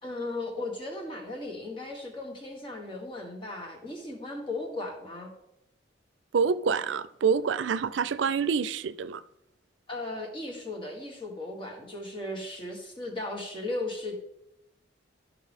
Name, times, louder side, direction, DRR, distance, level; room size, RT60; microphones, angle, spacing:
voice 1, 0.0-5.3 9.9-14.2, left 2 dB, 30° left, 1.8 m, -36 dB
voice 2, 6.3-9.2, right 6 dB, 80° right, 0.4 m, -27 dB
13.5 x 5.9 x 3.6 m
head